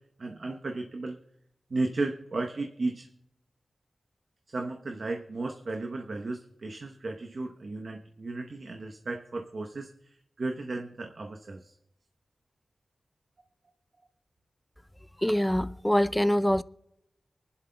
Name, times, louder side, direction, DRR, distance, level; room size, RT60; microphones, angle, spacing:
voice 1, 0.2-1.2 1.7-3.1 4.5-9.9 10.4-11.7, right 2 dB, 60° right, 0.9 m, -34 dB
voice 2, 15.2-16.6, equal, 5° left, 0.4 m, -24 dB
24.5 x 11.0 x 2.2 m
cardioid pair, 60°, 0 cm